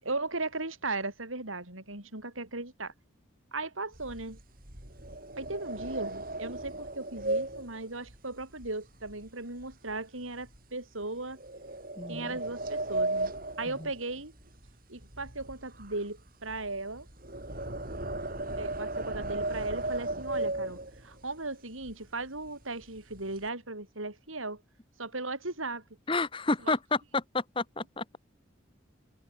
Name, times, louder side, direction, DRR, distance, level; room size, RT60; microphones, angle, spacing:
voice 1, 0.0-2.9 3.5-4.4 5.4-11.4 12.1-13.3 13.6-14.3 14.9-17.1 18.6-24.6 25.0-25.8 26.6-26.8, right 2 dB, 85° right, 7.5 m, -37 dB
sound 1, 3.9-9.3 9.6-9.9 10.4-10.6 11.4-14.7 15.0-21.2 21.8-21.9 22.2-22.5 22.8-23.5, right 2 dB, 45° right, 4.9 m, -36 dB
voice 2, 12.0-12.3 26.1-26.8 27.1-28.2, left 3 dB, 25° left, 1.3 m, -30 dB
head